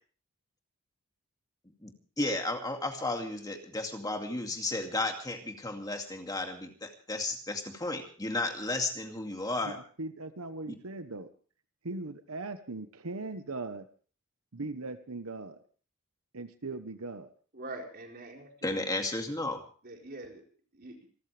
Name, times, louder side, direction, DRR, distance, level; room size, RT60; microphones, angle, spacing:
voice 1, 1.8-9.8 10.7-10.8 18.6-19.6, left 2 dB, 15° left, 3 dB, 2.4 m, -33 dB
voice 2, 9.6-11.3 11.8-13.9 14.5-15.6 16.3-17.3, right 3 dB, 75° right, 9 dB, 1.1 m, -39 dB
voice 3, 17.5-18.8 19.8-20.4 20.7-21.1, right 2 dB, 45° right, 1 dB, 4.4 m, -44 dB
27.5 x 14.0 x 3.4 m, 0.41 s
head